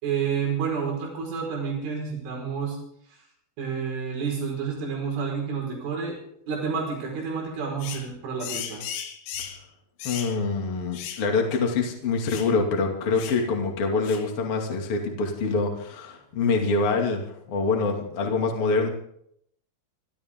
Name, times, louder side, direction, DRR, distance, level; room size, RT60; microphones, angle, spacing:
voice 1, 0.0-2.8 3.6-6.2 6.5-8.8, right 6 dB, 85° right, -1 dB, 7.5 m, -29 dB
sound 1, 7.8-8.1 8.4-9.6 10.0-10.4 10.9-11.3 11.5-11.6 12.3-12.5 13.2-13.4 14.0-14.3, left 9 dB, 85° left, 3.9 m, -36 dB
voice 2, 10.0-17.2 17.5-18.9, left 4 dB, 35° left, 1 dB, 2.6 m, -25 dB
28.5 x 12.5 x 3.8 m, 0.69 s
omnidirectional pair, 5.3 m